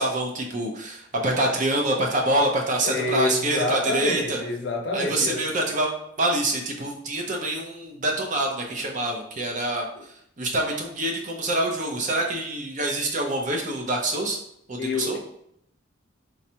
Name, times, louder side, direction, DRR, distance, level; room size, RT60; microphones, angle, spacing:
voice 1, 0.0-4.4 4.9-14.4 14.7-15.2, right 1 dB, 40° right, 1 dB, 0.6 m, -26 dB
voice 2, 2.8-5.5 10.0-10.1 14.8-15.2, left 3 dB, 60° left, 1 dB, 0.7 m, -28 dB
4.2 x 2.4 x 2.8 m, 0.71 s
head